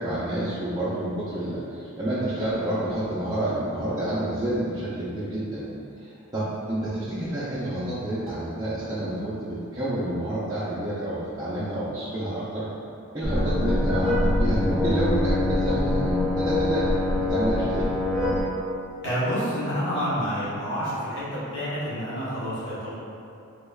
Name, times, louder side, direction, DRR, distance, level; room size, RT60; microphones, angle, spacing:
voice 1, 0.0-5.6 6.0-12.7 13.1-17.9, right 1 dB, 20° right, -11 dB, 0.4 m, -29 dB
sound 1, 13.2-18.4, left 1 dB, 10° left, 1.0 m, -24 dB
voice 2, 19.0-22.9, equal, 55° left, -10 dB, 1.1 m, -28 dB
3.3 x 3.1 x 2.3 m, 2.6 s
head